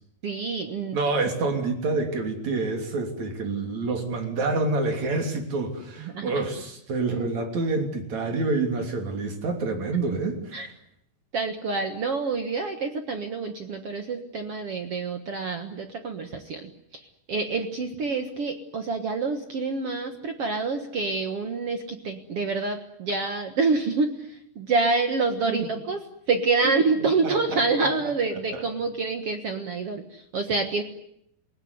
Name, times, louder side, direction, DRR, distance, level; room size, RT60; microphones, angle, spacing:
voice 1, 0.2-1.0 6.0-6.3 10.5-10.7 11.3-26.0 26.3-30.8, right 4 dB, 60° right, 6 dB, 1.5 m, -27 dB
voice 2, 0.9-10.7 25.5-25.7 26.6-26.7 27.2-27.9 28.5-28.6, right 3 dB, 45° right, 5 dB, 4.1 m, -27 dB
28.0 x 18.0 x 9.8 m, 0.76 s
omnidirectional pair, 4.9 m